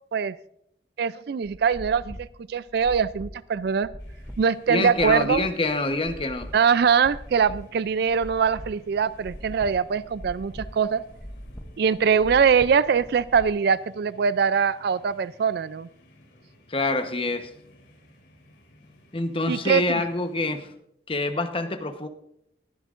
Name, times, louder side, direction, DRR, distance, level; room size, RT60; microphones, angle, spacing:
voice 1, 1.0-3.9 4.4-5.4 6.5-11.0 11.8-15.9 19.5-19.8, right 6 dB, 60° right, 17 dB, 0.4 m, -22 dB
sound 1, 1.4-13.5, equal, 5° left, 0.7 m, -42 dB
sound 2, 4.0-20.8, equal, 75° left, 3.3 m, -55 dB
voice 2, 4.7-6.5 16.7-17.5 19.1-20.7 21.1-22.1, left 2 dB, 30° left, 7 dB, 1.0 m, -26 dB
21.0 x 11.0 x 2.5 m, 0.74 s
head